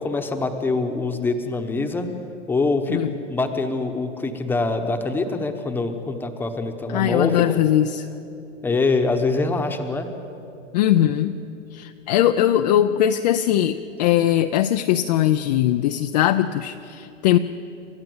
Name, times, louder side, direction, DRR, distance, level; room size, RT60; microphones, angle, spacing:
voice 1, 0.0-2.1 2.5-3.0 3.3-7.6 8.6-10.1, left 3 dB, 5° left, 6 dB, 1.0 m, -24 dB
voice 2, 6.9-8.1 10.7-11.4 11.7-17.4, left 11 dB, 35° left, 7 dB, 0.5 m, -20 dB
29.0 x 13.5 x 7.9 m, 2.8 s
supercardioid pair, 155°, 38 cm